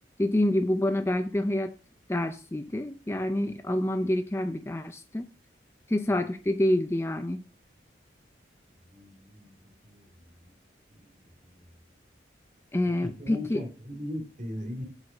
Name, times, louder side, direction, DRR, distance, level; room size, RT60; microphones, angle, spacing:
voice 1, 0.2-1.7 2.1-5.3 5.9-7.4 12.7-13.6, left 1 dB, 15° left, 0.4 m, -27 dB
voice 2, 8.9-9.5 9.8-10.4 10.9-11.2 13.0-14.8, left 1 dB, 40° right, 2.3 m, -38 dB
8.2 x 4.9 x 6.2 m
head